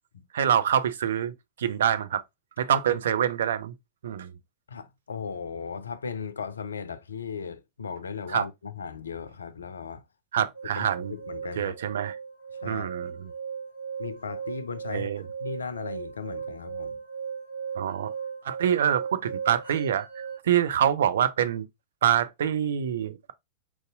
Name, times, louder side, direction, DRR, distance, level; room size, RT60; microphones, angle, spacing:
voice 1, 0.3-1.3 1.6-2.2 2.6-3.7 4.0-4.3 8.3-8.4 10.3-11.1 11.6-12.2 12.7-13.1 14.9-15.2 17.8-18.1 18.4-20.1 20.4-21.6 22.0-23.3, right 9 dB, 60° right, 0.4 m, -25 dB
voice 2, 4.7-10.0 10.4-10.5 10.8-11.7 12.6-12.9 14.0-17.0, left 6 dB, 70° left, 0.4 m, -37 dB
sound 1, 10.5-20.4, right 6 dB, 80° right, 1.6 m, -37 dB
4.6 x 2.6 x 2.6 m
figure-of-eight pair, 90°, 0 cm